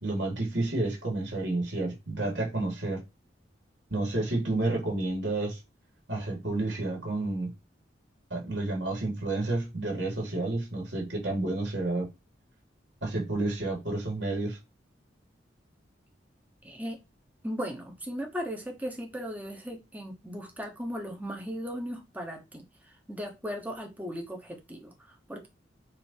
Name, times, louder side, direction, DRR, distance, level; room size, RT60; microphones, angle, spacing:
voice 1, 0.0-3.0 3.9-5.6 6.1-7.5 8.3-12.1 13.0-14.6, right 2 dB, 75° right, 3.2 m, -30 dB
voice 2, 16.6-17.0 17.4-25.5, equal, 10° right, 1.2 m, -37 dB
8.7 x 3.0 x 4.6 m
head